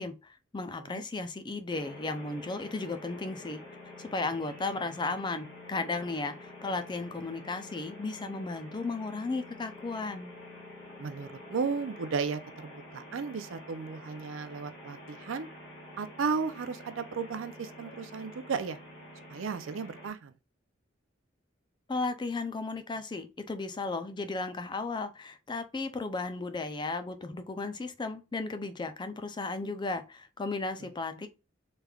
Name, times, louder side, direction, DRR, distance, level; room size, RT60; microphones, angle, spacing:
voice 1, 0.0-3.6 4.0-10.3 21.9-31.3, left 3 dB, 25° left, 0.4 m, -35 dB
sound 1, 1.7-20.1, left 1 dB, 55° left, 1.7 m, -48 dB
voice 2, 11.0-15.5 16.0-18.8 19.3-20.3 30.8-30.9 31.2-31.3, right 5 dB, 70° right, 0.4 m, -34 dB
3.4 x 3.1 x 2.3 m
head